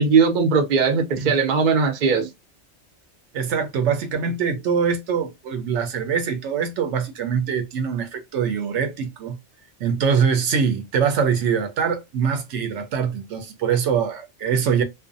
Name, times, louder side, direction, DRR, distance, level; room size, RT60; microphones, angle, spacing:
voice 1, 0.0-2.3, right 5 dB, 50° right, 0.6 m, -19 dB
voice 2, 3.3-9.4 9.8-14.8, right 6 dB, 80° right, 0.9 m, -23 dB
2.5 x 2.2 x 2.5 m
omnidirectional pair, 1.2 m